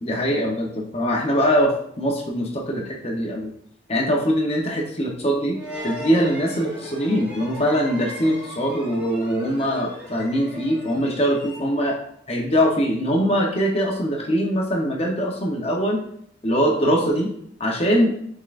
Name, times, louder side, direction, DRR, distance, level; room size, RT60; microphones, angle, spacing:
voice 1, 0.0-3.5 3.9-5.6 5.8-12.0 12.3-16.0 16.4-17.3 17.6-18.1, equal, 30° left, 0 dB, 0.8 m, -22 dB
sound 1, 5.5-12.0, equal, 10° right, 1.8 m, -38 dB
5.3 x 3.7 x 2.5 m, 0.68 s
head